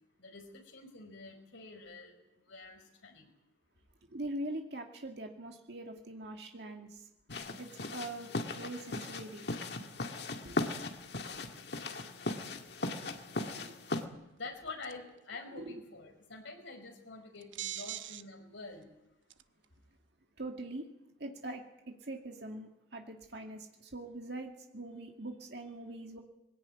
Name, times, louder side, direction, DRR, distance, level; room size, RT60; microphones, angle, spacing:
voice 1, 0.2-2.2 2.4-3.3 13.8-18.9, left 3 dB, 80° left, 3 dB, 5.2 m, -47 dB
voice 2, 4.1-7.1 7.6-9.5 10.4-10.6 13.0-13.1 13.4-13.9 15.5-15.8 20.4-20.9 21.2-26.2, right 1 dB, 60° right, 3 dB, 2.2 m, -43 dB
sound 1, 7.3-14.0, left 2 dB, 60° left, 1.9 m, -38 dB
sound 2, 14.8-15.1 17.4-18.2 18.8-18.9 19.3-19.7, right 12 dB, 85° right, 1.0 m, -40 dB
21.0 x 17.5 x 9.2 m, 0.91 s
head